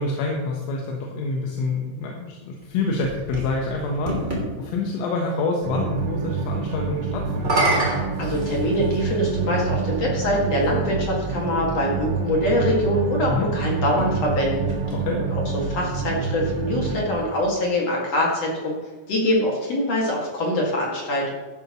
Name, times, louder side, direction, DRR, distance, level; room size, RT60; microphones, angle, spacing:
voice 1, 0.0-4.2 4.6-7.6 13.3-13.5 14.9-15.2, left 3 dB, 80° left, 0 dB, 3.7 m, -27 dB
sound 1, 2.6-4.5 7.3-9.1 10.0-10.1 13.8-15.4, right 2 dB, 20° right, 2.1 m, -27 dB
sound 2, 5.6-17.1, right 5 dB, 85° right, 3.6 m, -27 dB
voice 2, 8.2-14.7 15.3-18.7 19.1-21.3, left 1 dB, 50° left, -3 dB, 2.1 m, -24 dB
14.0 x 10.5 x 3.0 m, 1.3 s
omnidirectional pair, 5.7 m